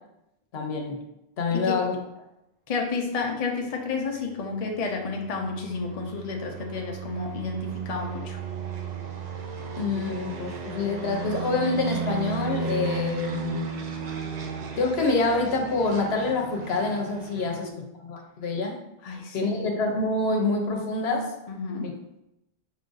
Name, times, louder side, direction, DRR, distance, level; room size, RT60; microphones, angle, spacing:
voice 1, 0.5-1.0 1.4-2.0 9.7-13.7 14.8-18.8 19.3-21.3 21.8-21.9, left 3 dB, 80° left, 2 dB, 1.0 m, -26 dB
voice 2, 2.7-8.4 17.4-17.8 19.0-19.7 21.5-21.9, left 4 dB, 45° left, 1 dB, 0.6 m, -31 dB
sound 1, 4.3-17.7, right 5 dB, 50° right, 0.6 m, -35 dB
5.4 x 2.5 x 3.8 m, 0.88 s
omnidirectional pair, 1.0 m